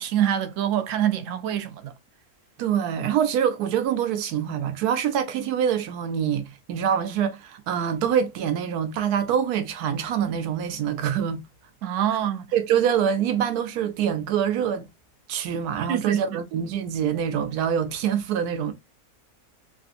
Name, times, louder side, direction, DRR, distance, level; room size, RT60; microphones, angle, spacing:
voice 1, 0.0-1.9 11.8-12.5 15.9-16.4, right 10 dB, 70° right, 0.8 m, -25 dB
voice 2, 2.6-11.4 12.5-14.9 15.3-18.7, right 8 dB, 85° right, 1.2 m, -25 dB
3.3 x 2.5 x 2.5 m
omnidirectional pair, 1.6 m